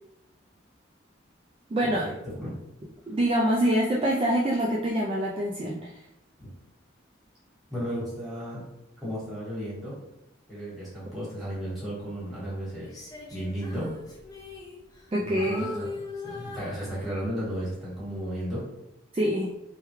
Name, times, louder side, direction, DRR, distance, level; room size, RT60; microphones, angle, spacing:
voice 1, 1.7-2.1 3.1-5.9 15.1-15.7 19.1-19.5, equal, 30° right, -4 dB, 0.3 m, -25 dB
voice 2, 7.7-8.6 9.0-9.9 10.5-12.9 13.3-13.9 15.2-15.9 16.2-18.6, equal, ahead, -9 dB, 1.3 m, -34 dB
Female singing, 12.8-15.1 15.4-17.4 17.9-18.2, left 2 dB, 20° left, 0.6 m, -40 dB
3.4 x 2.2 x 3.1 m, 0.87 s
head